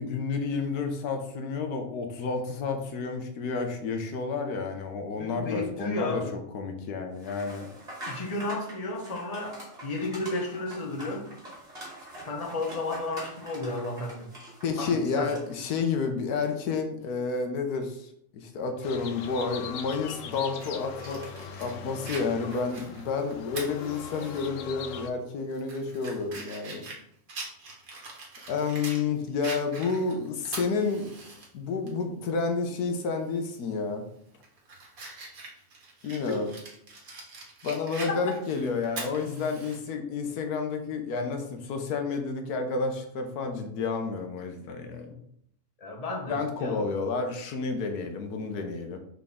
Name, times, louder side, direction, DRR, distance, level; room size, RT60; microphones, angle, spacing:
voice 1, 0.0-7.7 14.6-21.2 21.6-26.8 28.5-31.1 31.5-34.1 36.0-36.5 37.6-45.1 46.3-49.0, left 4 dB, 85° left, 5 dB, 1.4 m, -30 dB
voice 2, 5.2-6.3 8.1-11.3 12.2-14.3 14.8-15.3 38.1-38.2 45.8-47.0, left 2 dB, 25° left, 1 dB, 1.1 m, -33 dB
sound 1, 7.2-15.7, right 1 dB, 25° right, 2.3 m, -44 dB
sound 2, 18.8-25.1, left 7 dB, 65° left, 0.9 m, -40 dB
Fire, 20.6-24.5 24.9-25.0 25.5-29.0 29.4-31.5 31.9-32.0 33.5-33.7 34.2-39.8, right 3 dB, 65° right, 1.8 m, -43 dB
6.3 x 4.4 x 3.6 m, 0.70 s
omnidirectional pair, 1.6 m